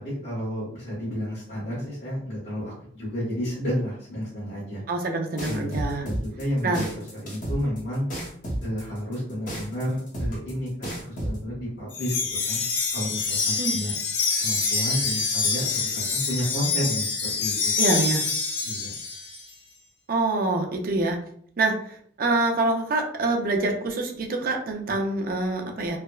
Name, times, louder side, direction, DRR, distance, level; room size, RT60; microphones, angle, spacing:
voice 1, 0.2-4.8 5.4-8.0 8.6-12.1 12.5-12.6 12.9-13.9 14.4-17.8 18.6-18.9, equal, 65° left, -10 dB, 1.2 m, -31 dB
voice 2, 4.9-6.1 6.6-6.9 13.6-13.8 17.8-18.3 20.1-21.2 21.6-26.0, right 2 dB, 50° right, 3 dB, 0.5 m, -25 dB
sound 1, 5.4-11.4, right 1 dB, 45° left, 0.9 m, -31 dB
Wind chime, 11.9-19.4, left 4 dB, 80° left, 0.7 m, -26 dB
3.3 x 2.1 x 2.3 m, 0.62 s
head